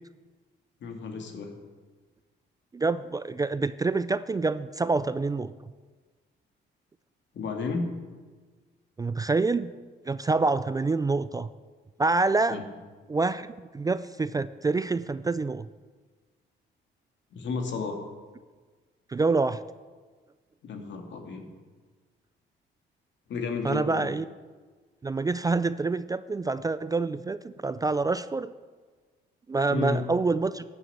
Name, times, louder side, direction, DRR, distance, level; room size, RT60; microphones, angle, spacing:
voice 1, 0.8-1.5 7.3-7.9 12.5-12.6 17.3-18.0 20.6-21.5 23.3-24.1 29.7-30.0, left 4 dB, 65° left, 4 dB, 2.1 m, -32 dB
voice 2, 2.7-5.5 9.0-9.7 10.1-11.5 12.0-12.6 13.1-13.5 13.7-15.7 19.1-19.6 23.6-24.2 25.0-28.5 29.5-30.6, right 3 dB, 20° right, 14 dB, 0.3 m, -26 dB
12.0 x 7.1 x 8.1 m, 1.4 s
cardioid pair, 90°, 20 cm